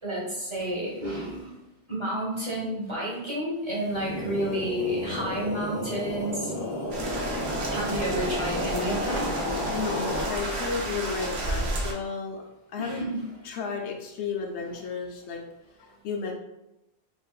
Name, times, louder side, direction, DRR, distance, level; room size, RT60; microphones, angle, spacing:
voice 1, 0.0-1.5 1.9-6.5 6.9-7.0 7.7-9.3 12.8-13.2, right 1 dB, 30° right, -7 dB, 0.9 m, -30 dB
sound 1, 3.7-11.1, left 1 dB, 60° left, 0.8 m, -32 dB
sound 2, 6.9-11.9, right 2 dB, 75° right, 0.9 m, -32 dB
voice 2, 9.7-12.4 12.7-13.0 13.4-15.4 15.8-16.3, left 5 dB, 90° left, 1 dB, 0.9 m, -33 dB
3.3 x 2.5 x 2.3 m, 0.94 s
omnidirectional pair, 1.1 m